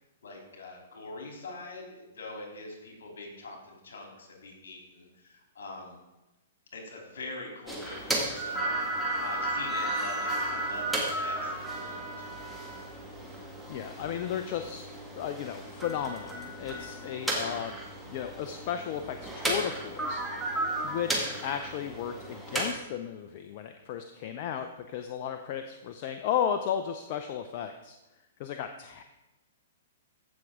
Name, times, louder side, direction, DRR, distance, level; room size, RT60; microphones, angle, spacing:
voice 1, 0.2-6.0 6.7-12.4, left 2 dB, 65° left, 1 dB, 3.2 m, -43 dB
sound 1, 7.7-22.7, right 1 dB, 5° right, 1.9 m, -34 dB
voice 2, 13.4-14.8 15.1-17.8 18.1-28.0 28.4-29.0, left 9 dB, 45° left, 8 dB, 0.6 m, -34 dB
15.0 x 6.2 x 3.7 m, 1.0 s
hypercardioid pair, 115°, 0 cm